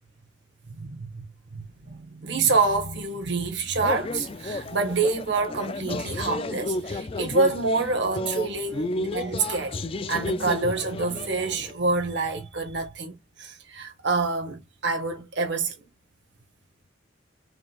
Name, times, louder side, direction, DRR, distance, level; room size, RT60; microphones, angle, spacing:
voice 1, 0.7-1.2 1.5-9.8 10.1-13.1 13.4-15.7, right 3 dB, 60° right, 1.4 m, -27 dB
sound 1, 3.8-11.7, left 2 dB, 30° left, 0.4 m, -32 dB
4.9 x 3.8 x 2.4 m
head